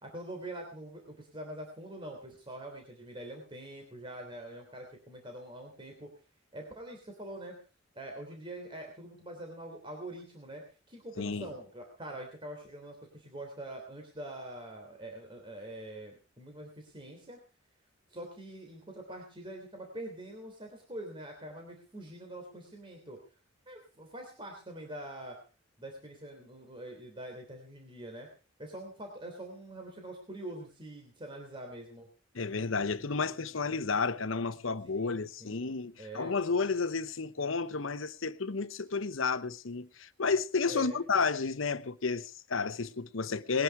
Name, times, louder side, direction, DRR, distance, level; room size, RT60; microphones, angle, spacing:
voice 1, 0.0-6.1 6.5-7.5 8.0-17.4 18.1-23.2 23.7-25.4 25.8-28.3 28.6-32.1 34.9-35.7 36.0-36.3 40.7-41.0, right 1 dB, 25° right, 3.3 m, -44 dB
voice 2, 11.2-11.5 32.3-43.6, left 4 dB, 75° left, 0.9 m, -31 dB
20.5 x 10.5 x 4.8 m
head